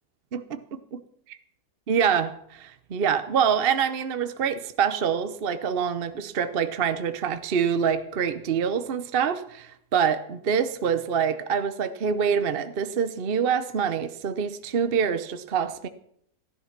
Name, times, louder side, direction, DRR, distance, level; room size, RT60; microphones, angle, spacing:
voice 1, 0.3-1.0 1.9-15.9, right 7 dB, 45° right, 11 dB, 0.9 m, -26 dB
16.0 x 11.5 x 5.9 m, 0.68 s
omnidirectional pair, 1.6 m